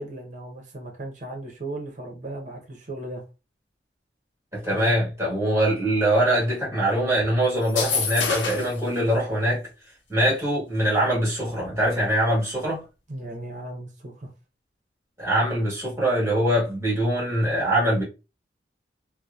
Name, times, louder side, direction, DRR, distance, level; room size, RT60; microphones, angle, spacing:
voice 1, 0.0-3.2 4.7-4.9 13.1-14.3, right 2 dB, 40° right, 0.8 m, -36 dB
voice 2, 4.5-9.7 10.1-12.8 15.2-18.0, right 1 dB, 15° right, 1.3 m, -23 dB
sound 1, 7.6-8.8, left 5 dB, 80° left, 0.7 m, -26 dB
2.9 x 2.1 x 2.3 m
head